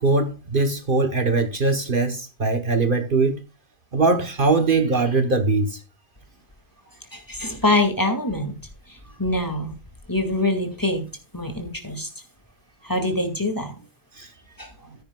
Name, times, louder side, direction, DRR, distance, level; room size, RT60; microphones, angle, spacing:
voice 1, 0.0-3.4 3.9-5.8 14.2-14.3, right 3 dB, 50° right, 1.2 m, -21 dB
voice 2, 7.1-8.5 8.9-9.8 10.1-11.1 11.3-12.1 12.8-13.8 14.6-14.7, left 2 dB, 20° left, 2.0 m, -24 dB
15.0 x 9.5 x 2.3 m
omnidirectional pair, 1.1 m